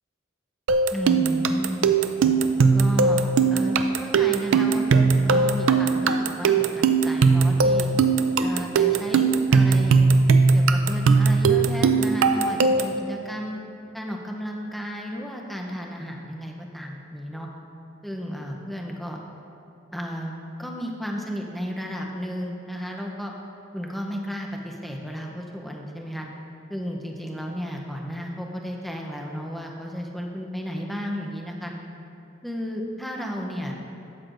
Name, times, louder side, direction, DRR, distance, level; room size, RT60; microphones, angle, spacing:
sound 1, 0.7-13.0, right 4 dB, 70° right, 0.4 m, -19 dB
voice 1, 0.9-1.9 2.7-7.9 8.4-10.0 10.5-13.6 13.9-17.5 18.0-19.2 19.9-20.3 20.6-23.3 23.7-26.3 26.7-31.7 32.4-33.8, equal, ahead, 0 dB, 0.7 m, -33 dB
12.5 x 7.9 x 2.6 m, 2.8 s
head